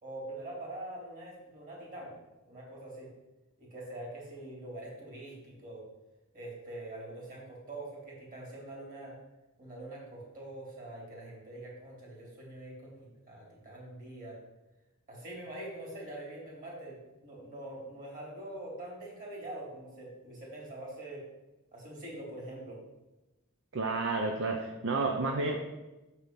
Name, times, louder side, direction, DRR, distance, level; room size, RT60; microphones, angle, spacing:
voice 1, 0.0-2.1 2.4-3.1 3.6-5.8 6.3-9.1 9.6-12.9 13.3-14.4 15.1-21.2 21.7-22.8, right 1 dB, 40° right, -3 dB, 2.8 m, -44 dB
voice 2, 23.7-25.6, right 3 dB, 60° right, 2 dB, 0.6 m, -31 dB
6.8 x 4.6 x 5.2 m, 1.1 s
head